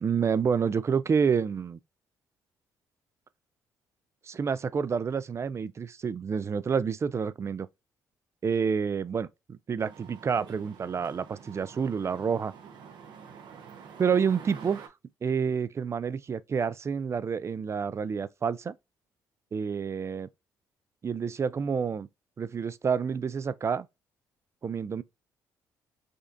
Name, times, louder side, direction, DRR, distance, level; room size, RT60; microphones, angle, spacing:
voice 1, 0.0-1.8 4.3-7.7 8.4-12.5 14.0-14.9 15.2-18.7 19.5-20.3 21.0-22.1 22.4-23.9 24.6-25.0, right 6 dB, 35° right, 0.3 m, -28 dB
sound 1, 9.8-14.9, right 6 dB, 70° right, 0.8 m, -48 dB
5.1 x 2.3 x 2.5 m
supercardioid pair, 60°, 8 cm